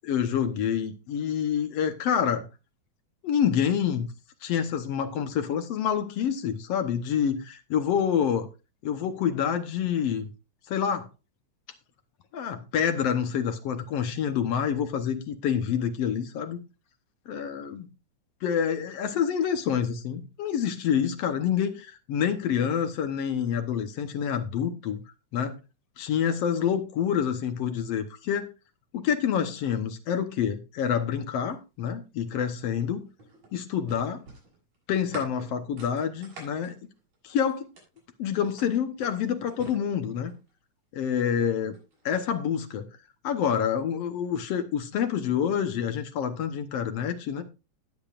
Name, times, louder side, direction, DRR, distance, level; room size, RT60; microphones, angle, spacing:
voice 1, 0.0-2.5 3.2-4.1 4.4-8.5 8.8-10.3 10.7-11.1 12.3-16.6 17.3-17.8 18.4-25.0 25.3-25.6 26.0-28.5 28.9-33.1 33.5-34.3 34.9-36.8 37.2-37.7 38.2-40.3 40.9-41.7 42.1-42.9 43.2-47.4, left 8 dB, 65° left, 1.9 m, -27 dB
sound 1, 32.7-38.0 38.4-40.5 41.5-42.3, right 2 dB, 65° right, 7.6 m, -47 dB
19.0 x 7.4 x 2.5 m
omnidirectional pair, 3.4 m